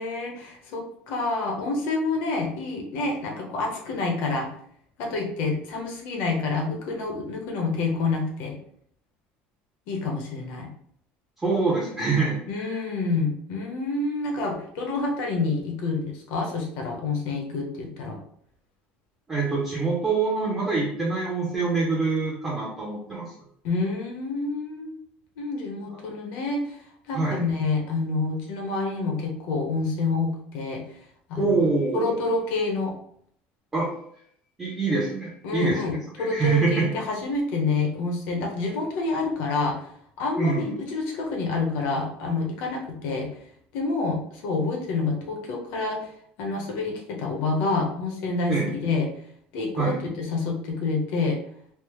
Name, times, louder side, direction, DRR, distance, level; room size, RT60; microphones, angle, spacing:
voice 1, 0.0-4.5 5.0-8.6 9.9-10.7 12.5-18.2 23.6-25.0 25.4-26.8 27.1-30.8 31.3-31.6 31.9-32.9 35.4-39.8 40.2-43.3 43.7-46.1 46.4-49.1 49.5-51.4, left 3 dB, 60° left, 0 dB, 0.8 m, -28 dB
voice 2, 11.4-12.8 19.3-23.3 27.1-27.4 31.4-32.2 33.7-33.9 34.6-36.9 40.4-40.7 48.5-48.7 49.8-50.0, right 4 dB, 10° right, -6 dB, 0.6 m, -25 dB
3.3 x 2.0 x 3.0 m, 0.66 s
cardioid pair, 180°, 4 cm